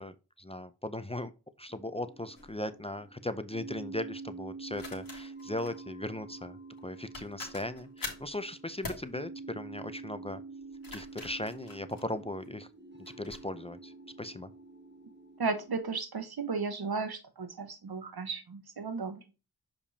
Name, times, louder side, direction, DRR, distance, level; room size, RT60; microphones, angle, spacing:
voice 1, 0.0-1.3 1.6-10.4 10.9-12.7 13.0-14.5, left 1 dB, 15° left, 11 dB, 0.5 m, -38 dB
sound 1, 1.7-15.8, right 3 dB, 30° right, 1.1 m, -47 dB
sound 2, 2.4-2.6 4.7-5.8 6.8-6.9 7.1-8.3 8.8-9.1 10.6-12.5 13.1-13.4, left 3 dB, 60° left, 1.9 m, -44 dB
voice 2, 15.4-19.2, right 4 dB, 75° right, 9 dB, 1.1 m, -34 dB
6.9 x 5.2 x 2.7 m, 0.30 s
wide cardioid pair, 90°, 38 cm